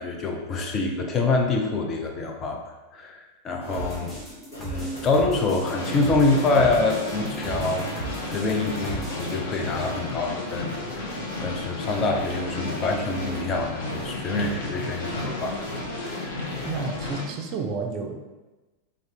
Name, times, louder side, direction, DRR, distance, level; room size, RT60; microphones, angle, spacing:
voice 1, 0.0-11.1 11.4-16.5, left 3 dB, 30° left, 2 dB, 0.4 m, -26 dB
sound 1, 3.6-4.3 4.5-17.1, right 1 dB, 75° left, 1.2 m, -40 dB
sound 2, 3.7-9.3, right 3 dB, 10° left, 0.9 m, -37 dB
sound 3, 5.6-17.3, left 2 dB, 55° left, 0.7 m, -33 dB
voice 2, 16.7-18.2, right 4 dB, 40° right, 3 dB, 0.3 m, -31 dB
2.4 x 2.4 x 3.3 m, 1.1 s
figure-of-eight pair, 90°, 0 cm